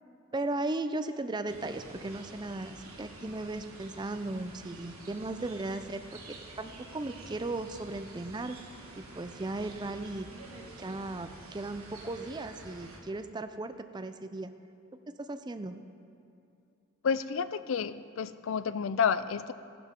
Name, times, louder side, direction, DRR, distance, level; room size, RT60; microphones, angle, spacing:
voice 1, 0.3-8.6 9.0-10.3 10.8-14.5 15.1-15.8, right 2 dB, 20° right, 9 dB, 0.4 m, -36 dB
sound 1, 1.5-13.0, right 2 dB, 85° right, 1.7 m, -49 dB
voice 2, 17.0-19.5, left 6 dB, 65° left, 14 dB, 0.4 m, -30 dB
14.5 x 12.0 x 3.7 m, 2.6 s
head